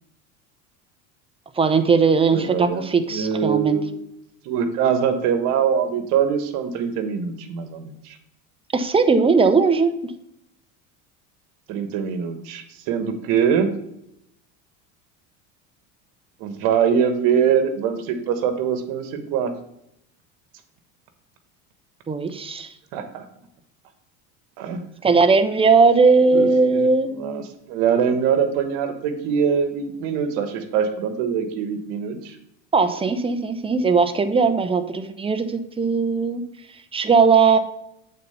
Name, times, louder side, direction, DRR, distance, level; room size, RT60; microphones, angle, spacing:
voice 1, 1.6-3.8 8.7-9.9 22.1-22.7 25.0-27.1 32.7-36.4 36.9-37.6, right 4 dB, 15° right, 8 dB, 0.7 m, -18 dB
voice 2, 2.3-4.0 4.4-8.2 11.7-13.7 16.4-19.5 22.9-23.2 24.6-24.8 26.3-32.4, right 7 dB, 70° right, 8 dB, 1.3 m, -23 dB
8.2 x 4.1 x 5.6 m, 0.78 s
supercardioid pair, 105°, 35 cm